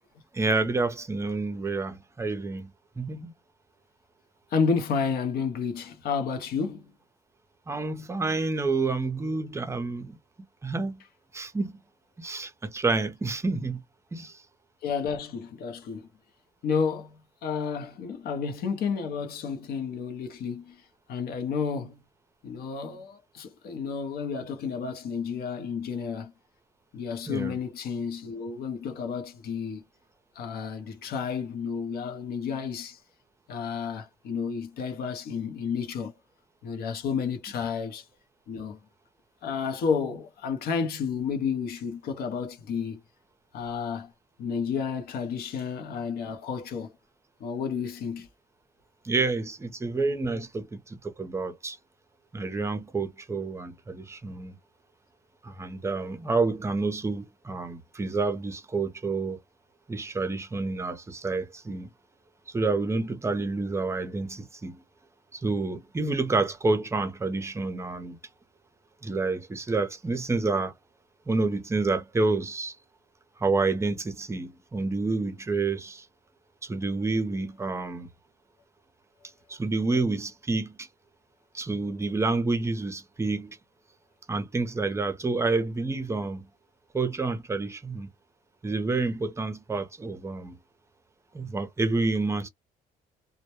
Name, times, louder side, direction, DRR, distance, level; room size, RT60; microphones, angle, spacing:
voice 1, 0.3-2.7 3.0-3.3 7.7-10.2 10.6-11.0 11.3-11.7 12.2-13.8 14.1-14.4 27.3-27.5 49.0-51.8 52.3-54.6 55.4-59.4 59.9-61.9 62.5-64.8 65.3-68.2 69.0-70.7 71.3-72.8 73.4-76.1 76.6-78.1 79.5-80.9 81.5-83.6 84.3-86.5 86.9-88.1 88.6-90.6 91.3-92.5, right 3 dB, 15° right, 0.5 m, -29 dB
voice 2, 4.5-6.9 14.8-16.1 16.6-20.8 21.1-22.0 22.4-26.3 26.9-29.8 30.4-33.0 33.5-36.1 36.6-38.0 38.5-38.8 39.4-43.0 43.5-44.1 44.4-46.9 47.4-48.3, left 6 dB, 65° left, 0.7 m, -31 dB
2.1 x 2.1 x 2.9 m
cardioid pair, 110°, 17 cm